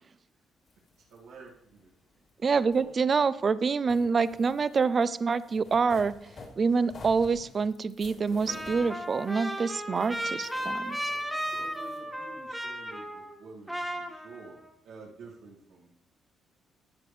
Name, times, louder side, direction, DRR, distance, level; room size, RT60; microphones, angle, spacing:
sound 1, 0.7-3.5 3.8-12.0, left 3 dB, 55° left, 2.8 m, -51 dB
voice 1, 1.1-1.9 2.7-2.9 11.1-14.6 14.8-15.9, right 3 dB, 90° right, -5 dB, 2.3 m, -49 dB
voice 2, 2.4-6.1 6.6-11.0, right 5 dB, 40° right, 16 dB, 0.5 m, -26 dB
Trumpet, 8.5-13.4 13.7-14.7, equal, 5° right, 1.5 m, -35 dB
13.5 x 8.4 x 3.3 m, 0.75 s
cardioid pair, 90°, 0 cm